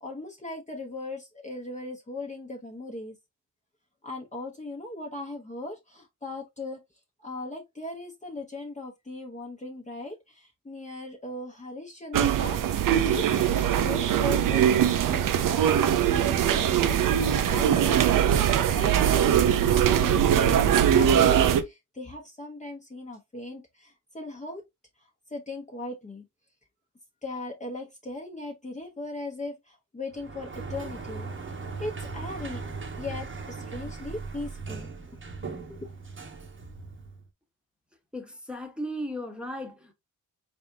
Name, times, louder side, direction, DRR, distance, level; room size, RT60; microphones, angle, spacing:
voice 1, 0.0-3.2 4.0-6.8 7.2-15.4 16.1-24.6 25.3-26.2 27.2-32.6 32.9-34.9 35.6-35.9, left 2 dB, 20° left, 0.9 m, -39 dB
sound 1, 12.1-21.6, right 9 dB, 80° right, 0.6 m, -22 dB
Sliding door, 30.1-37.3, right 4 dB, 40° right, 1.0 m, -38 dB
voice 2, 38.1-39.9, equal, 5° right, 1.1 m, -36 dB
4.1 x 3.5 x 2.6 m
cardioid pair, 85°, 32 cm